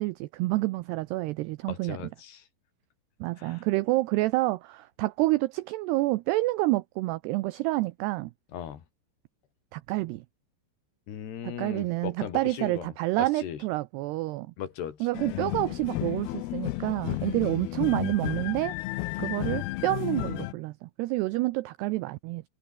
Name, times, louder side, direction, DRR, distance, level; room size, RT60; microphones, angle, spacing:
voice 1, 0.0-2.1 3.2-8.3 9.7-10.2 11.4-14.5 15.0-18.7 19.2-22.4, right 19 dB, 85° right, 2.3 m, -28 dB
voice 2, 1.7-2.4 3.4-3.6 8.5-8.8 11.1-12.9 13.2-13.6 14.6-15.1, left 9 dB, 60° left, 4.5 m, -38 dB
sound 1, 15.1-20.5, left 18 dB, 90° left, 2.1 m, -32 dB
omnidirectional pair, 5.5 m